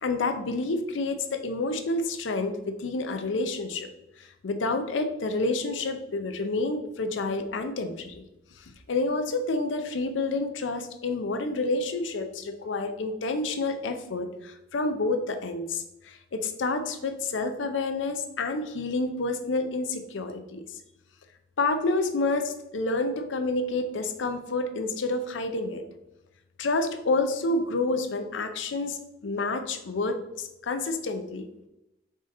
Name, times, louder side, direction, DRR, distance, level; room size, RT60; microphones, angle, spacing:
voice 1, 0.0-3.9 4.2-8.2 8.6-20.7 21.6-25.8 26.6-31.5, left 3 dB, 80° left, 7 dB, 0.5 m, -29 dB
4.9 x 2.7 x 3.7 m, 0.90 s
head